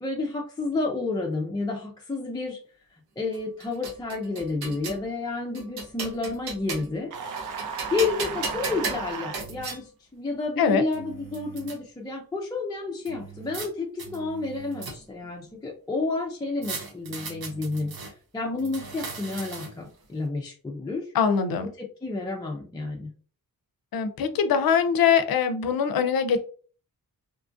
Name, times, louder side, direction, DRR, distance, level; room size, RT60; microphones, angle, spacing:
voice 1, 0.0-2.6 3.2-7.1 7.9-17.9 18.3-21.1 21.8-23.1, left 3 dB, 10° left, 0.3 m, -30 dB
sound 1, 3.3-5.0 5.5-7.0 7.4-9.8 10.6-10.7 10.9-11.8 13.0-13.7 14.0-15.3 16.6-18.1 18.6-19.9, right 4 dB, 90° right, 0.8 m, -37 dB
sound 2, 7.1-9.4, right 6 dB, 60° right, 0.5 m, -34 dB
voice 2, 21.1-21.7 23.9-26.4, left 7 dB, 75° left, 0.5 m, -22 dB
2.9 x 2.4 x 2.5 m
wide cardioid pair, 165°, 36 cm